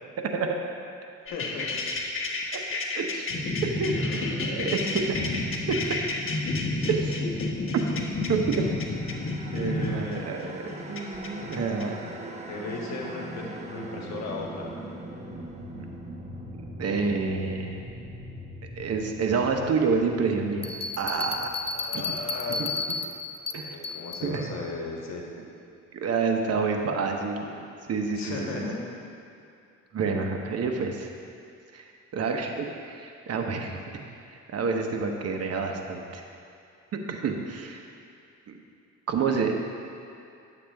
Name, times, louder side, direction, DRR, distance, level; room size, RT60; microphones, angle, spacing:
voice 1, 0.2-0.5 2.5-5.2 5.7-6.0 6.9-7.2 7.7-7.8 8.3-8.4 9.5-10.5 10.9-12.0 16.8-17.8 18.8-20.7 21.0-21.5 22.6-22.7 23.5-23.7 24.2-24.5 25.4-25.5 25.9-28.7 29.9-31.1 31.7-33.8 34.5-36.2 37.1-37.8 38.5-38.6 39.1-39.5, right 5 dB, 55° right, 3 dB, 1.0 m, -28 dB
voice 2, 1.3-1.8 4.0-4.4 6.8-6.9 9.5-10.7 12.5-14.7 21.7-23.0 23.5-25.2 28.1-28.8 39.3-39.5, left 3 dB, 65° left, -1 dB, 1.5 m, -37 dB
sound 1, 1.3-11.8, left 2 dB, 45° left, 1.1 m, -30 dB
sound 2, 8.0-23.3, right 1 dB, 20° right, 0.9 m, -42 dB
Bell, 20.6-24.3, left 3 dB, 20° left, 0.5 m, -32 dB
10.0 x 7.1 x 3.5 m, 2.5 s
cardioid pair, 90°, 30 cm